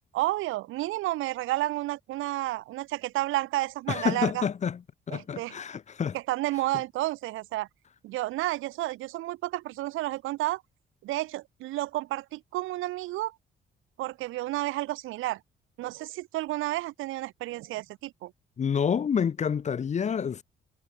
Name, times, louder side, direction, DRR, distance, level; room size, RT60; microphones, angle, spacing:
voice 1, 0.1-4.4 5.1-5.6 6.1-7.7 8.0-10.6 11.0-13.3 14.0-15.4 15.8-18.3, right 17 dB, 90° right, 0.9 m, -31 dB
voice 2, 3.9-4.8 5.1-6.2 18.6-20.4, left 7 dB, 35° left, 0.6 m, -28 dB
cardioid pair, 90°, 20 cm